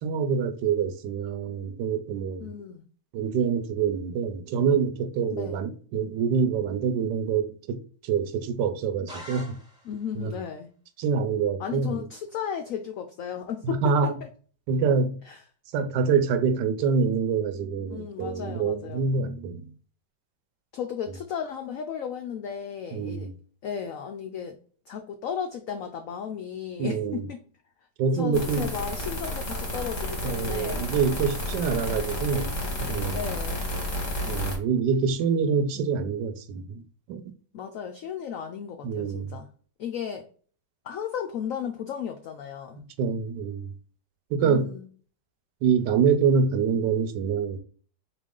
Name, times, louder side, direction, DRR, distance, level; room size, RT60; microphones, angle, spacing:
voice 1, 0.0-2.5 3.1-9.6 10.2-10.3 11.0-12.1 13.6-14.2 14.7-15.2 15.7-19.7 22.9-23.3 26.8-27.3 28.0-28.7 30.2-32.5 32.8-33.2 34.3-36.8 37.1-37.2 38.8-39.4 43.0-43.7 44.3-44.7 45.6-47.6, right 6 dB, 75° right, 1.2 m, -26 dB
voice 2, 2.4-2.8 5.3-5.6 9.8-10.7 11.6-14.3 15.2-15.4 17.9-19.0 20.7-23.3 23.6-24.6 24.9-27.4 28.1-30.9 33.1-33.7 37.5-39.5 39.8-40.3 40.8-42.8 44.4-44.9, left 8 dB, 80° left, 0.7 m, -34 dB
sound 1, 9.1-10.2, equal, 5° right, 0.7 m, -43 dB
sound 2, 28.3-34.6, left 1 dB, 30° left, 0.9 m, -31 dB
4.1 x 3.0 x 3.6 m
omnidirectional pair, 2.0 m